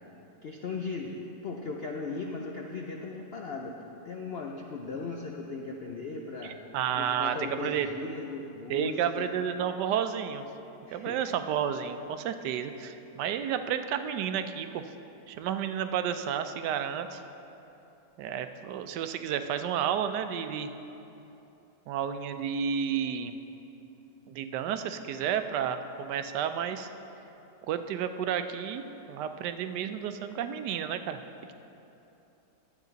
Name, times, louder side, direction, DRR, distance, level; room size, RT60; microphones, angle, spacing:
voice 1, 0.4-1.2 1.4-6.6 7.0-9.3 10.9-11.2, left 3 dB, 70° left, 0 dB, 0.5 m, -37 dB
voice 2, 6.7-7.4 7.6-7.9 8.7-10.4 10.9-14.8 15.3-17.2 18.2-20.7 21.9-23.4 24.3-26.9 27.7-28.8 29.1-31.2, right 8 dB, 85° right, 9 dB, 1.2 m, -31 dB
11.5 x 8.3 x 4.0 m, 2.9 s
omnidirectional pair, 1.8 m